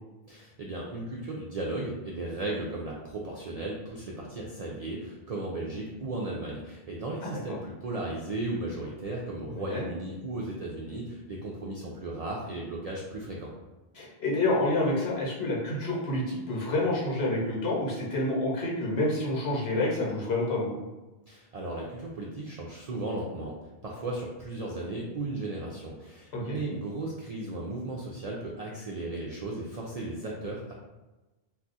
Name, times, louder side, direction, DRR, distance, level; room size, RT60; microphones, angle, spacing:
voice 1, 0.3-13.5 21.3-30.7, right 2 dB, 55° right, -3 dB, 0.4 m, -35 dB
voice 2, 7.2-7.6 9.7-9.9 13.9-20.7 26.3-26.6, left 2 dB, 75° left, -4 dB, 1.2 m, -28 dB
2.4 x 2.4 x 3.9 m, 1.1 s
omnidirectional pair, 1.1 m